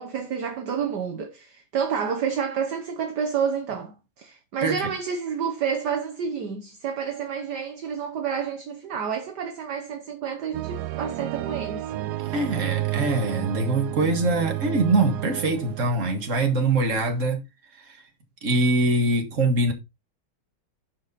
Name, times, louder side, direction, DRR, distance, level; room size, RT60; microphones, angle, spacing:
voice 1, 0.0-11.9, right 7 dB, 55° right, 1.6 m, -29 dB
sound 1, 10.5-16.7 17.0-17.1, right 15 dB, 70° right, 0.9 m, -31 dB
voice 2, 12.3-17.4 17.9-18.0 18.4-19.7, right 2 dB, 40° right, 2.1 m, -23 dB
12.0 x 5.0 x 4.1 m
omnidirectional pair, 2.3 m